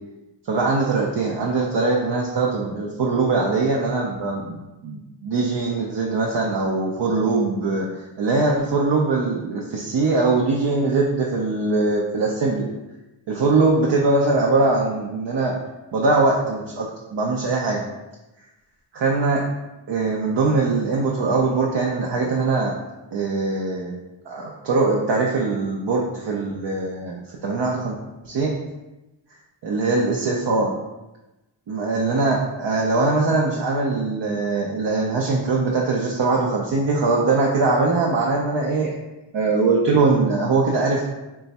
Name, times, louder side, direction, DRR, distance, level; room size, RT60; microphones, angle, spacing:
voice 1, 0.4-7.8 8.2-12.7 13.3-15.5 15.9-16.9 17.1-17.8 18.9-19.4 19.9-22.7 23.1-23.9 24.3-28.0 28.2-28.5 29.6-30.7 31.7-38.9 39.3-41.0, right 3 dB, 60° right, -2 dB, 0.7 m, -21 dB
3.1 x 2.3 x 4.0 m, 1.0 s
cardioid pair, 70°, 46 cm